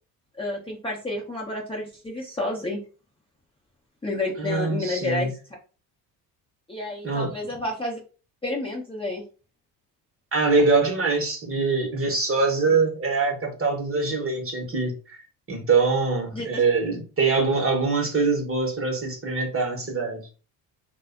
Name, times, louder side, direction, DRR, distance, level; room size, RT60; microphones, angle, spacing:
voice 1, 0.3-2.8 4.0-5.3 6.7-8.0 8.4-9.2 16.3-16.6, left 2 dB, 10° left, 0.7 m, -30 dB
voice 2, 4.4-5.3 7.0-7.3 10.3-15.2 15.5-20.3, right 4 dB, 30° right, 0.9 m, -23 dB
2.5 x 2.2 x 2.4 m
supercardioid pair, 70°, 48 cm